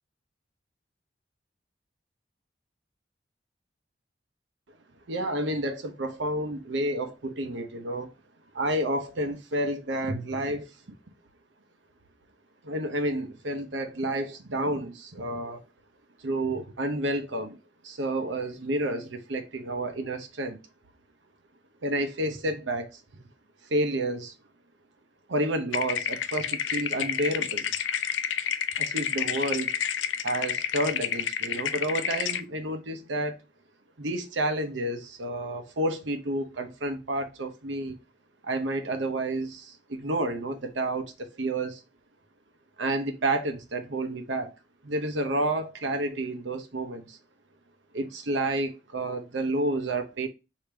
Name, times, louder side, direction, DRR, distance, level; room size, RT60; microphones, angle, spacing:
voice 1, 5.1-8.1 8.5-10.7 12.6-15.6 16.2-17.6 17.8-20.6 21.8-23.0 23.7-24.3 25.3-27.7 28.8-29.7 30.2-33.4 34.0-38.0 38.4-41.8 42.8-44.5 44.8-47.2 47.9-50.3, right 1 dB, 80° right, 0.8 m, -30 dB
sound 1, 25.7-32.4, left 9 dB, 75° left, 0.4 m, -30 dB
5.0 x 2.8 x 3.3 m
head